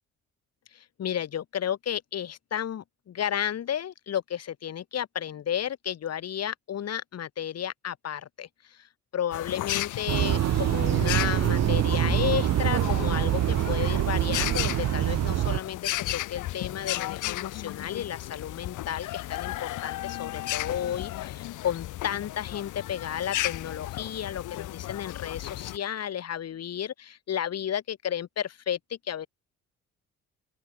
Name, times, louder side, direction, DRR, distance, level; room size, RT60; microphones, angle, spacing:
voice 1, 0.7-8.9 9.1-29.3, left 9 dB, 55° left, 1.7 m, -33 dB
sound 1, 9.3-25.8, left 15 dB, 85° left, 2.8 m, -34 dB
sound 2, 10.1-15.6, right 12 dB, 60° right, 0.7 m, -25 dB
open air
cardioid pair, 90°, 30 cm